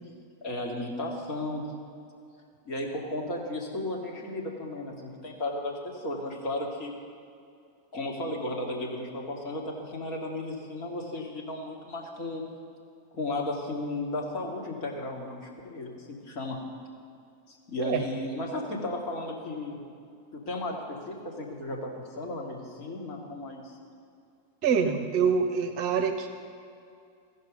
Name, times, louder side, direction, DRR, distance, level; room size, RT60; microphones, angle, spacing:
voice 1, 0.4-1.7 2.7-6.9 7.9-12.4 13.1-16.6 17.5-19.8 20.3-23.8, left 1 dB, 40° left, -1 dB, 2.1 m, -34 dB
voice 2, 24.6-26.3, right 6 dB, 40° right, 7 dB, 0.8 m, -25 dB
16.0 x 5.4 x 5.4 m, 2.5 s
figure-of-eight pair, 90°, 0 cm